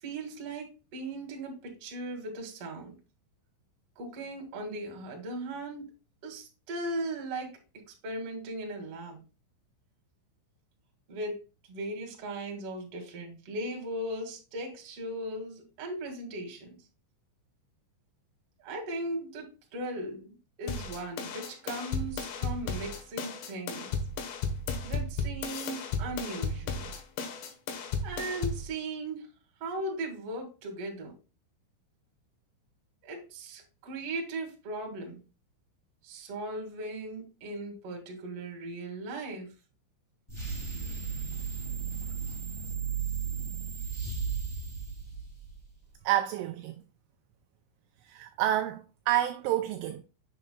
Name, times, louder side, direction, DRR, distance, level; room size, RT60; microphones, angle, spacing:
voice 1, 0.0-2.9 4.0-5.9 6.2-9.2 11.1-11.4 11.7-16.8 18.6-23.9 24.8-26.9 28.0-29.3 29.6-31.1 33.0-35.2 36.0-39.5, right 1 dB, 50° right, 2.0 m, -38 dB
sound 1, 20.7-28.7, left 4 dB, 70° left, 3.2 m, -34 dB
sound 2, 40.3-45.7, right 6 dB, 25° left, 0.6 m, -35 dB
voice 2, 46.0-46.8 48.0-50.0, right 12 dB, 85° right, 2.7 m, -29 dB
7.6 x 7.6 x 2.3 m
omnidirectional pair, 5.9 m